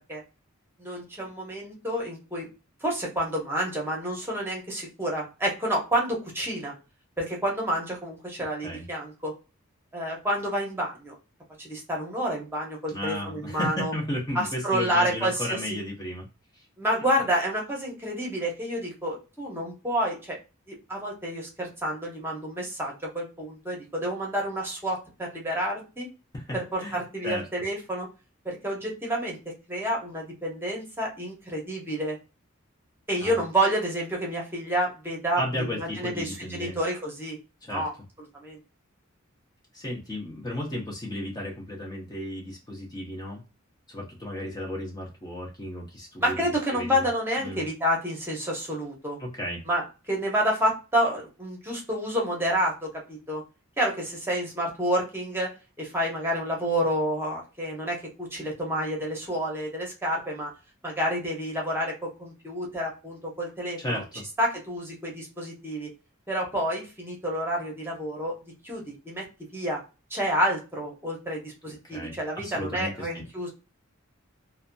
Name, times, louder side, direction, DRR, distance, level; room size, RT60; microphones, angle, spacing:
voice 1, 0.8-2.5 2.8-6.7 7.2-9.3 9.9-11.1 11.6-13.9 14.3-15.6 16.8-20.4 20.7-26.1 26.5-28.1 28.4-29.4 29.7-32.2 33.1-37.4 37.7-37.9 38.3-38.6 46.2-49.2 49.7-53.4 53.8-60.5 60.8-64.0 64.4-65.9 66.3-68.3 68.6-69.3 69.5-69.8 70.1-73.5, equal, 10° right, -2 dB, 0.9 m, -29 dB
voice 2, 12.9-16.3 26.3-27.0 27.2-27.4 33.2-33.3 35.4-36.8 37.6-37.8 39.7-43.4 43.9-46.3 46.7-47.1 47.4-47.7 49.2-49.6 63.8-64.3 71.8-73.2, left 1 dB, 20° left, -2 dB, 0.6 m, -34 dB
2.7 x 2.2 x 2.5 m, 0.30 s
head